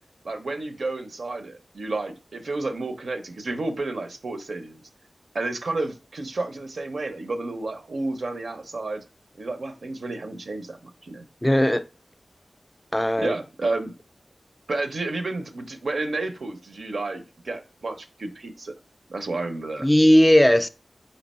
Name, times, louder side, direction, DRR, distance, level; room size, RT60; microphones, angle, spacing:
voice 1, 0.2-4.8 5.3-9.0 9.4-11.2 13.2-13.9 14.7-18.7 19.1-19.9, right 2 dB, 80° right, 0.5 m, -31 dB
voice 2, 11.4-11.8 12.9-13.4 19.8-20.7, equal, 10° left, 0.3 m, -17 dB
4.4 x 2.7 x 4.1 m
wide cardioid pair, 60°, 0 cm